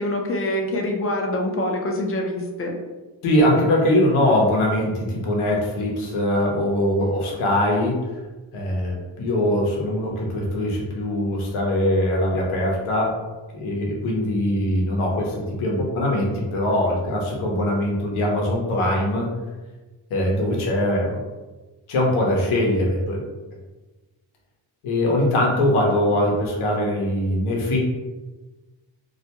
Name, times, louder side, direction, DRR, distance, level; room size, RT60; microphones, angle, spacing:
voice 1, 0.0-2.7, left 1 dB, 30° left, 1 dB, 0.5 m, -25 dB
voice 2, 3.2-8.1 8.5-13.2 13.5-19.3 20.1-21.2 21.9-23.2 24.8-27.8, left 1 dB, 85° left, -2 dB, 0.8 m, -22 dB
2.4 x 2.1 x 2.8 m, 1.2 s
cardioid pair, 70°, 48 cm